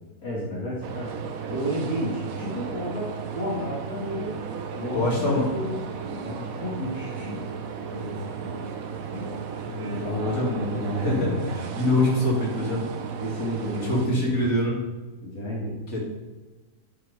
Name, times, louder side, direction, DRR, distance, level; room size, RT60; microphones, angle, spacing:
voice 1, 0.2-1.2 1.5-4.4 4.8-5.7 6.2-7.4 10.0-11.5 13.2-14.3 15.2-15.8, equal, 65° left, -6 dB, 2.8 m, -31 dB
sound 1, 0.8-14.1, right 7 dB, 65° right, 1.3 m, -35 dB
voice 2, 4.9-5.5 7.9-8.1 9.6-10.5 10.9-12.8 13.8-14.8 15.9-16.0, left 1 dB, 45° left, -4 dB, 3.2 m, -25 dB
sound 2, 5.8-7.5 7.9-10.4, left 2 dB, 20° left, 2.9 m, -43 dB
11.0 x 8.5 x 3.6 m, 1.2 s
omnidirectional pair, 1.6 m